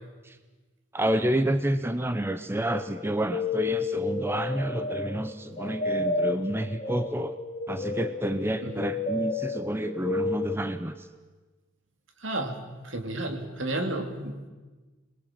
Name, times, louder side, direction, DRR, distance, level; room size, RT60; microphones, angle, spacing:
voice 1, 0.9-7.4 7.7-11.1, right 1 dB, 10° right, 10 dB, 0.7 m, -29 dB
sound 1, 2.7-10.9, left 3 dB, 35° left, 2.2 m, -32 dB
voice 2, 12.2-14.4, right 1 dB, 65° right, 5 dB, 2.9 m, -32 dB
26.5 x 21.0 x 7.6 m, 1.3 s
head